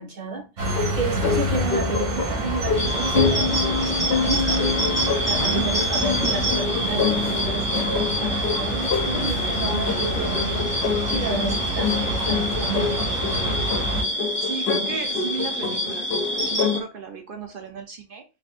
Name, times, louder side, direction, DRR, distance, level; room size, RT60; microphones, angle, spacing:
voice 1, 0.0-3.8 4.1-4.9 5.2-13.2, right 3 dB, 40° right, 1.1 m, -31 dB
sound 1, 0.6-14.0, right 1 dB, 85° right, 1.9 m, -28 dB
sound 2, 0.7-16.8, left 6 dB, 65° left, 0.9 m, -28 dB
sound 3, 2.8-16.8, equal, 10° left, 1.0 m, -27 dB
voice 2, 14.4-18.2, right 5 dB, 60° right, 0.6 m, -35 dB
4.1 x 2.9 x 2.4 m
omnidirectional pair, 1.2 m